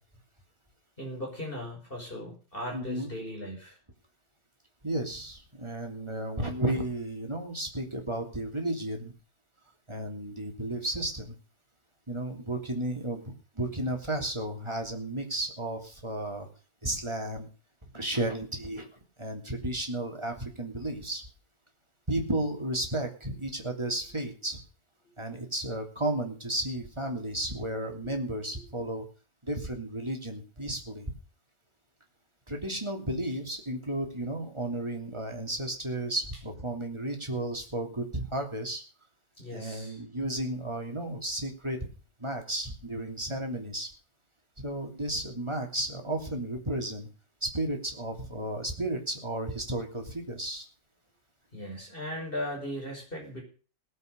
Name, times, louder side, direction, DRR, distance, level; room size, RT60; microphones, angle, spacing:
voice 1, 1.0-3.8 28.0-28.1 39.4-40.0 51.5-53.4, left 1 dB, 45° left, 0 dB, 6.2 m, -38 dB
voice 2, 2.7-3.1 4.8-9.1 9.9-11.3 12.1-16.5 16.8-17.5 17.9-18.9 19.2-21.2 22.1-24.6 25.2-29.0 29.4-31.1 32.5-38.8 39.5-41.8 42.2-43.9 44.6-47.1 47.4-50.6, right 1 dB, 20° right, 3 dB, 3.1 m, -33 dB
18.5 x 8.0 x 6.8 m, 0.38 s
omnidirectional pair, 1.3 m